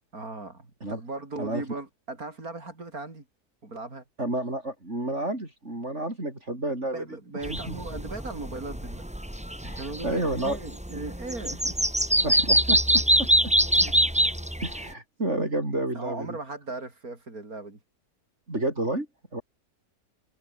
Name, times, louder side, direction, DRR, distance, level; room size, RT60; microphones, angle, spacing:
voice 1, 0.1-3.2 3.6-4.0 6.7-9.1 9.8-11.8 13.8-13.9 15.9-17.8, right 3 dB, 60° right, 5.1 m, -38 dB
voice 2, 4.2-7.0 7.5-7.8 9.6-10.6 12.2-13.5 14.6-16.4 18.5-19.1 19.3-19.4, right 1 dB, 45° right, 6.6 m, -30 dB
sound 1, 7.4-14.9, equal, 5° right, 2.2 m, -24 dB
omnidirectional pair, 1.8 m